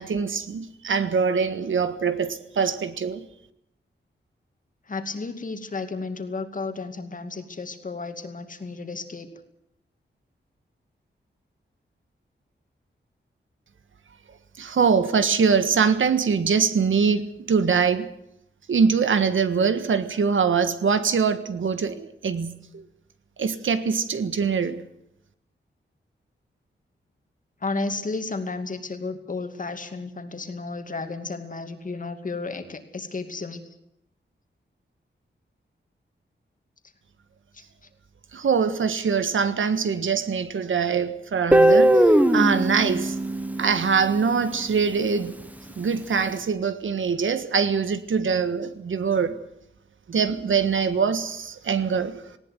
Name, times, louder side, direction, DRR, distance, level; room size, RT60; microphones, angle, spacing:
voice 1, 0.0-3.3 14.6-18.1 18.7-22.8 23.4-24.8 38.3-43.2 43.6-45.4 45.7-49.4 50.1-52.4, right 6 dB, 80° right, 1.6 m, -23 dB
voice 2, 4.9-9.3 27.6-33.7 37.5-37.9, left 3 dB, 40° left, 2.4 m, -33 dB
Guitar, 41.5-44.5, right 1 dB, 10° right, 1.3 m, -19 dB
19.0 x 17.5 x 9.5 m
wide cardioid pair, 140°, 20 cm